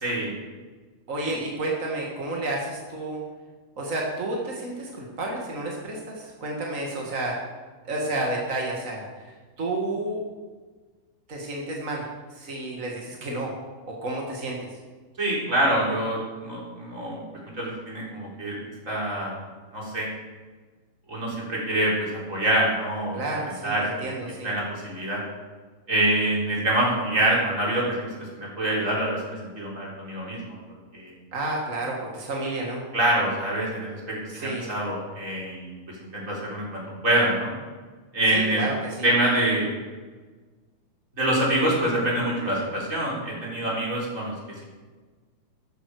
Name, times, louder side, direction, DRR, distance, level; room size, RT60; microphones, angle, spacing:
voice 1, 0.0-0.3 1.2-1.3 15.2-18.6 18.9-19.3 19.7-20.1 21.1-21.9 22.3-23.2 23.5-24.1 24.4-25.2 25.9-28.1 28.4-30.6 30.9-31.1 32.9-35.7 36.1-37.5 38.1-38.6 39.0-39.7 41.2-44.3, right 1 dB, 20° right, -4 dB, 3.9 m, -25 dB
voice 2, 1.1-3.2 3.8-7.3 7.8-9.1 9.6-10.2 11.3-12.1 12.3-13.5 13.9-14.6 23.1-24.5 31.3-32.8 34.3-34.7 38.3-39.1, right 2 dB, 55° right, -1 dB, 0.8 m, -30 dB
13.0 x 11.5 x 4.9 m, 1.4 s
omnidirectional pair, 4.6 m